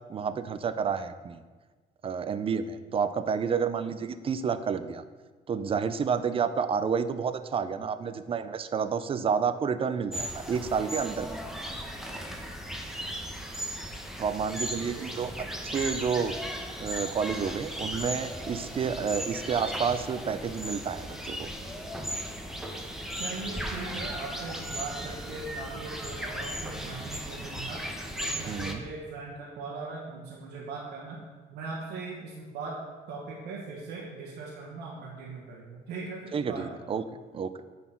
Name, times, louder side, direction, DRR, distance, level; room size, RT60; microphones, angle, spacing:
voice 1, 0.1-1.4 2.0-5.0 5.5-11.4 14.2-16.3 16.8-21.5 28.4-28.8 36.3-37.0 37.3-37.5, right 6 dB, 35° right, 12 dB, 0.5 m, -30 dB
sound 1, 10.1-28.7, equal, ahead, 0.9 m, -37 dB
voice 2, 14.8-15.3 18.7-19.1 23.1-27.8 28.2-31.2 31.5-32.8 33.1-36.7, right 4 dB, 85° right, -4 dB, 1.4 m, -40 dB
9.0 x 4.3 x 5.8 m, 1.4 s
cardioid pair, 110°, 17 cm